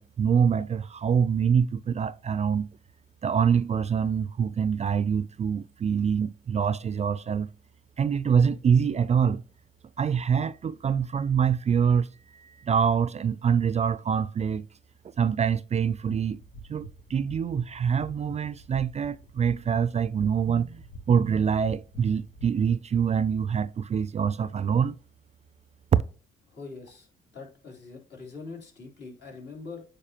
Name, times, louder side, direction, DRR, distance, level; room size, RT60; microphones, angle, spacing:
voice 1, 0.0-2.7 3.2-7.5 8.0-9.4 10.0-12.1 12.3-14.7 15.2-16.4 16.7-25.0 25.9-26.0, right 7 dB, 35° right, 0.3 m, -25 dB
sound 1, 16.4-22.5, right 1 dB, 80° left, 1.3 m, -46 dB
voice 2, 26.5-27.1 27.3-29.8, left 4 dB, 60° left, 3.4 m, -43 dB
8.7 x 5.2 x 2.9 m
cardioid pair, 90°, 20 cm